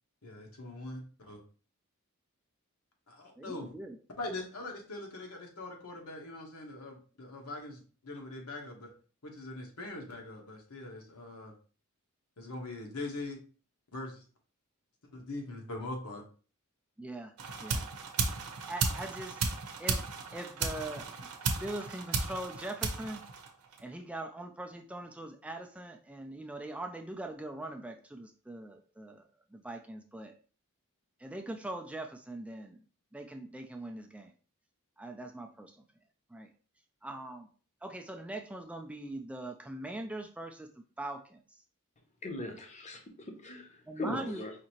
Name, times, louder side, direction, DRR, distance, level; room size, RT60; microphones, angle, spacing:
voice 1, 0.2-1.4 3.1-3.7 4.2-8.9 9.2-11.5 12.4-13.4 13.9-14.2 15.1-16.2, left 2 dB, 85° left, 1 dB, 1.2 m, -42 dB
voice 2, 3.4-4.0 17.0-17.3 17.6-17.9 18.7-19.4 19.8-20.0 20.3-21.1 21.4-23.2 23.8-29.2 29.5-30.3 31.2-32.8 33.1-34.3 35.0-35.7 36.3-36.5 37.0-37.5 37.8-41.4 43.9-44.4, right 1 dB, 5° right, 4 dB, 0.3 m, -41 dB
sound 1, 17.4-23.9, right 4 dB, 85° right, 0.7 m, -35 dB
voice 3, 42.2-44.5, left 1 dB, 30° left, 4 dB, 0.7 m, -40 dB
4.9 x 2.7 x 2.9 m, 0.39 s
head